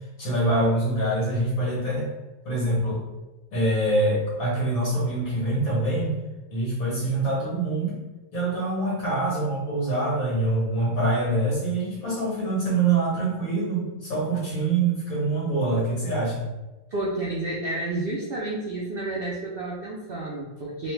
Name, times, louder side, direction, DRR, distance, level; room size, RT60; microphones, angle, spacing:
voice 1, 0.2-2.1 2.4-3.0 3.5-6.1 6.5-8.0 8.3-16.4, right 2 dB, 70° left, -5 dB, 1.6 m, -25 dB
voice 2, 16.9-20.9, right 2 dB, 70° right, -4 dB, 0.5 m, -30 dB
3.1 x 2.2 x 3.1 m, 1.1 s
omnidirectional pair, 1.5 m